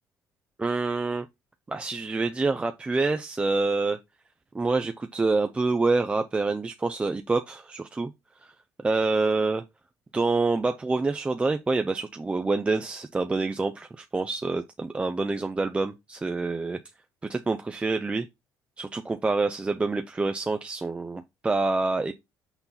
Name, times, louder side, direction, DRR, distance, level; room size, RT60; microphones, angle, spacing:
voice 1, 0.6-1.3 1.7-4.0 4.5-8.1 8.4-8.5 8.8-9.6 10.1-16.8 17.3-18.3 18.8-22.1, right 3 dB, 15° right, 0.4 m, -27 dB
6.0 x 4.2 x 3.9 m
cardioid pair, 115°, 7 cm